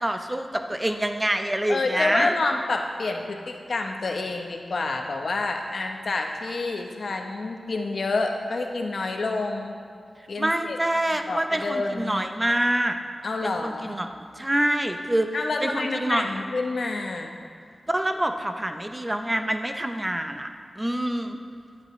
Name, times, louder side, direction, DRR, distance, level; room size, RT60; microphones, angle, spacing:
voice 1, 0.0-2.3 10.4-13.0 13.4-15.3 15.6-16.3 17.9-20.5 20.8-21.4, right 1 dB, 15° right, 6 dB, 0.5 m, -26 dB
voice 2, 1.7-9.8 10.3-10.8 11.3-12.2 13.2-14.0 15.3-17.3, left 3 dB, 65° left, 3 dB, 0.8 m, -28 dB
11.0 x 8.7 x 3.1 m, 2.2 s
wide cardioid pair, 95°, 0 cm